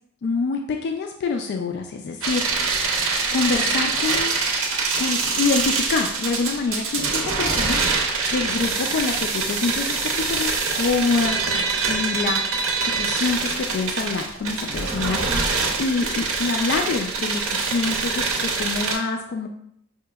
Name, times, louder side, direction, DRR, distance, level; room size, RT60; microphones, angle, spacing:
voice 1, 0.2-2.5 2.7-3.0 3.3-4.3 5.0-19.5, left 4 dB, 55° left, 4 dB, 0.3 m, -26 dB
sound 1, 2.2-19.0, right 4 dB, 80° right, 0.6 m, -24 dB
4.9 x 2.8 x 2.3 m, 0.72 s
head